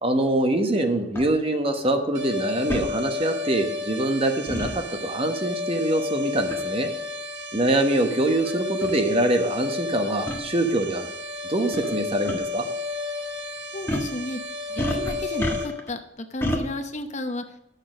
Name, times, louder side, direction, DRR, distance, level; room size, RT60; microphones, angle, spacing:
voice 1, 0.0-6.9 7.5-11.1 11.5-12.7, right 1 dB, 30° right, 5 dB, 1.1 m, -24 dB
sound 1, 1.1-1.3 2.7-2.9 4.5-4.7 6.5-6.7 7.5-7.6 8.4-8.5 8.8-8.9 10.3-10.4 11.7-12.0 12.3-12.4 13.9-14.1 14.8-15.9 16.4-16.6, equal, 15° left, 1.3 m, -28 dB
sound 2, 2.1-15.7, left 3 dB, 75° right, 1.9 m, -32 dB
voice 2, 13.7-14.4 14.7-16.0 16.3-17.4, left 1 dB, 40° left, 7 dB, 0.8 m, -32 dB
10.0 x 6.7 x 6.2 m, 0.88 s
head